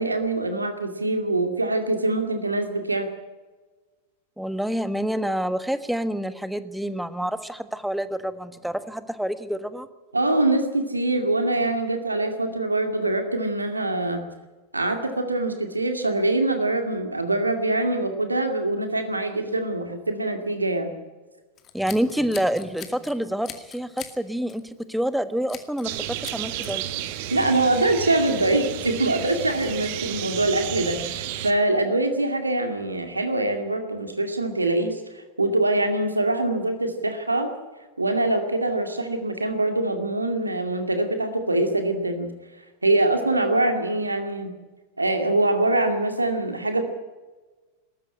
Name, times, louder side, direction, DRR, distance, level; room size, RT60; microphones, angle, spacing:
voice 1, 0.0-3.1 10.1-14.2 14.7-20.9 27.3-37.5 38.0-42.3 42.8-44.5 45.0-46.8, right 2 dB, 85° right, 6 dB, 2.3 m, -24 dB
voice 2, 4.4-9.9 21.7-26.8, equal, ahead, 13 dB, 1.3 m, -27 dB
Scissors, 21.6-23.1 23.4-24.2 24.5-24.7 25.5-25.9 26.2-26.7, left 10 dB, 30° left, 2.3 m, -41 dB
sound 1, 25.8-31.5, right 12 dB, 50° right, 1.5 m, -32 dB
20.0 x 13.5 x 9.9 m, 1.3 s
figure-of-eight pair, 90°, 0 cm